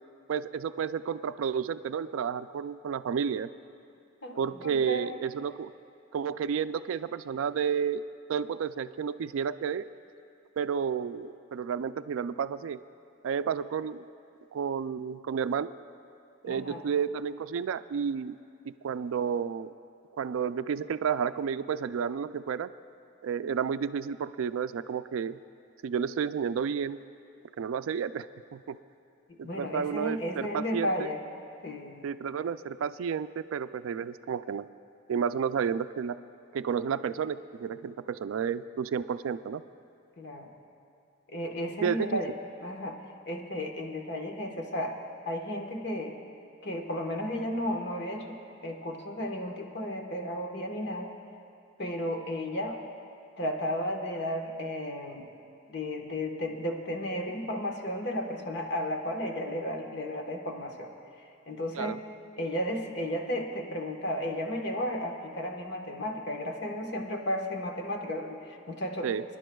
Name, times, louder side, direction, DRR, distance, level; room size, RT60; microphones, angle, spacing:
voice 1, 0.3-3.5 4.4-5.7 6.1-9.8 10.6-12.8 13.2-14.0 14.5-15.7 16.4-18.4 18.7-19.7 20.2-22.7 23.2-25.4 25.8-27.0 27.6-28.8 29.4-31.1 32.0-34.7 35.1-36.2 36.5-39.6 41.8-42.2 61.7-62.0 69.0-69.2, right 7 dB, 75° right, 13 dB, 0.3 m, -31 dB
voice 2, 4.2-5.1 16.4-16.8 29.3-31.2 31.6-32.1 40.2-40.5 41.3-42.3 42.6-43.0 43.3-44.9 45.3-46.1 46.6-48.3 48.6-51.1 51.8-52.8 53.4-55.3 55.7-60.9 61.5-62.0 62.4-69.1, equal, 55° left, 2 dB, 1.2 m, -33 dB
27.0 x 11.0 x 2.3 m, 2.5 s
head